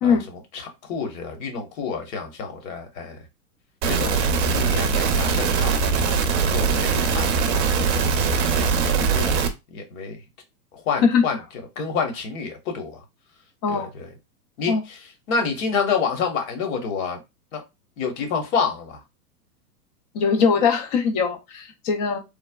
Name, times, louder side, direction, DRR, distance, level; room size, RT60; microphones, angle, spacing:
voice 1, 0.0-3.2 3.8-4.2 4.5-5.8 6.5-7.9 8.5-10.2 10.7-11.4 11.7-13.0 13.7-14.1 14.6-17.2 17.5-17.6 18.0-19.0, left 5 dB, 55° left, 1.2 m, -28 dB
sound 1, 3.8-9.5, right 5 dB, 45° right, 0.6 m, -21 dB
voice 2, 20.1-22.2, left 6 dB, 25° left, 0.4 m, -21 dB
3.2 x 2.0 x 2.2 m
hypercardioid pair, 125°, 48 cm